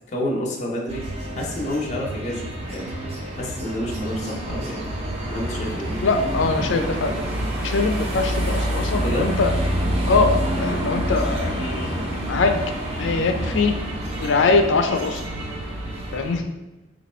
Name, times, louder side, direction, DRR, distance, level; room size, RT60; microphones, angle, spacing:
voice 1, 0.1-1.1 1.3-2.9 3.3-4.9 5.3-5.9 9.0-9.3, left 1 dB, 40° left, -2 dB, 0.6 m, -29 dB
sound 1, 0.9-16.4, equal, 35° right, 0.6 m, -27 dB
voice 2, 6.0-7.2 7.6-9.5 10.1-12.0 12.3-12.6 13.0-13.7 14.2-15.2 16.1-16.4, left 4 dB, 90° left, 5 dB, 0.4 m, -22 dB
3.0 x 2.5 x 4.2 m, 1.0 s
head